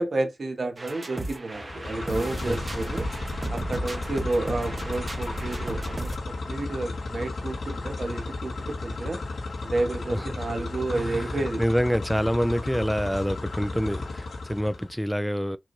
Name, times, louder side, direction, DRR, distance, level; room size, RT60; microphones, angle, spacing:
voice 1, 0.0-3.1 3.5-9.2 9.6-11.6, right 2 dB, 60° right, 1.3 m, -30 dB
sound 1, 0.8-6.2, right 2 dB, 35° right, 0.9 m, -35 dB
sound 2, 1.5-14.9, left 3 dB, 80° left, 3.0 m, -34 dB
voice 2, 10.1-10.5 10.9-15.6, equal, ahead, 0.4 m, -27 dB
6.0 x 2.5 x 3.2 m
wide cardioid pair, 70°, 0 cm